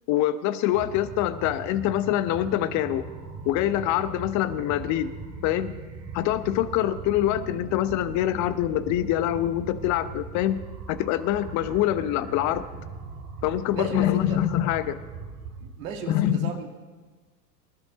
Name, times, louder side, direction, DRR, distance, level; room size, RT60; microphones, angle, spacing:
voice 1, 0.1-3.0 3.4-5.1 5.4-5.7 6.1-10.6 10.9-12.6 13.4-14.9 16.1-16.5, left 12 dB, 35° left, 13 dB, 1.0 m, -25 dB
sound 1, 0.7-15.7, right 4 dB, 30° right, 2.8 m, -40 dB
voice 2, 13.7-14.4 15.6-16.7, right 6 dB, 55° right, 4 dB, 2.1 m, -35 dB
25.0 x 12.0 x 4.0 m, 1.4 s
figure-of-eight pair, 90°, 49 cm